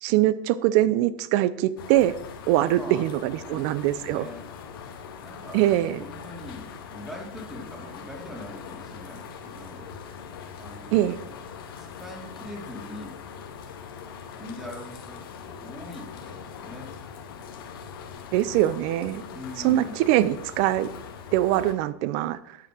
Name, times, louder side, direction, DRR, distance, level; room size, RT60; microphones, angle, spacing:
voice 1, 0.0-2.2 2.5-4.3 5.5-6.0 10.9-11.2 18.3-19.2 19.6-20.9 21.3-22.6, right 14 dB, 55° right, 16 dB, 0.8 m, -23 dB
sound 1, 1.8-21.7, left 6 dB, 75° left, 2.1 m, -41 dB
voice 2, 2.7-3.0 3.4-4.4 5.2-9.9 10.6-11.3 11.8-13.2 14.4-16.9 19.3-20.0, left 1 dB, 5° right, -1 dB, 3.4 m, -42 dB
12.5 x 6.0 x 6.4 m, 0.80 s
hypercardioid pair, 120°, 12 cm